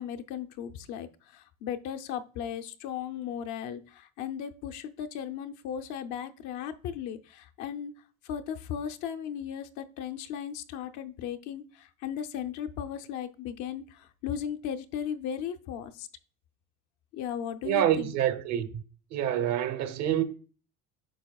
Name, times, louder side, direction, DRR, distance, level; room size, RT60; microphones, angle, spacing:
voice 1, 0.0-7.9 8.2-16.1 17.1-18.1, left 9 dB, 55° left, 0.6 m, -36 dB
voice 2, 17.6-18.8 19.1-20.2, right 11 dB, 50° right, 0.9 m, -27 dB
9.0 x 5.8 x 2.3 m
cardioid pair, 170°, 34 cm